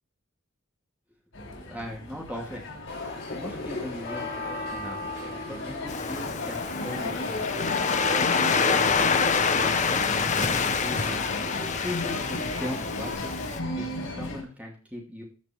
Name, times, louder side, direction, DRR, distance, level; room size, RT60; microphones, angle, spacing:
sound 1, 1.3-14.4, left 1 dB, 80° left, 4.5 m, -35 dB
voice 1, 1.4-2.7 3.3-5.0 5.5-8.2 8.6-11.2 11.8-13.3 13.7-15.2, left 1 dB, 5° right, -2 dB, 2.6 m, -39 dB
sound 2, 2.9-13.1, left 3 dB, 55° left, 4.6 m, -36 dB
Waves surf, 5.9-13.6, left 5 dB, 35° left, 0.7 m, -27 dB
14.5 x 5.2 x 4.5 m, 0.38 s
head